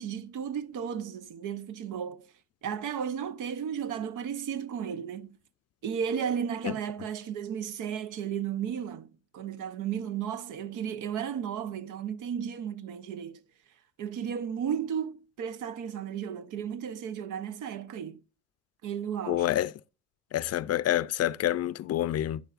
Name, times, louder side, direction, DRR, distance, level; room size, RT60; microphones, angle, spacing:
voice 1, 0.0-2.3 2.6-5.3 5.8-9.1 9.3-13.4 14.0-18.2 18.8-19.5, right 8 dB, 80° right, 0.9 m, -34 dB
voice 2, 19.3-19.7 20.3-22.4, left 13 dB, 55° left, 0.4 m, -27 dB
11.5 x 9.4 x 2.5 m
cardioid pair, 90°, 30 cm